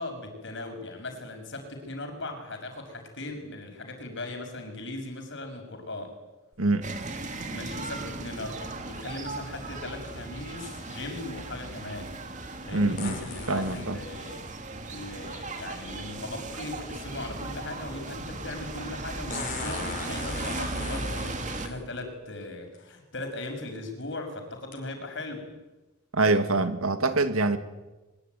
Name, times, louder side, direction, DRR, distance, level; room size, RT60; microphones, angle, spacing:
voice 1, 0.0-6.1 7.5-12.1 12.6-14.4 14.8-25.5, left 2 dB, 55° left, 6.2 m, -38 dB
sound 1, 6.5-6.6 13.0-13.9 15.9-16.0 19.3-21.8 22.7-22.8 23.5-23.8 24.7-24.8, left 4 dB, 40° left, 5.2 m, -38 dB
voice 2, 6.6-6.9 12.7-13.2 13.5-14.0 26.1-27.6, right 2 dB, 75° right, 2.1 m, -25 dB
sound 2, 6.8-21.7, right 2 dB, 35° right, 2.7 m, -37 dB
23.5 x 22.0 x 9.4 m
head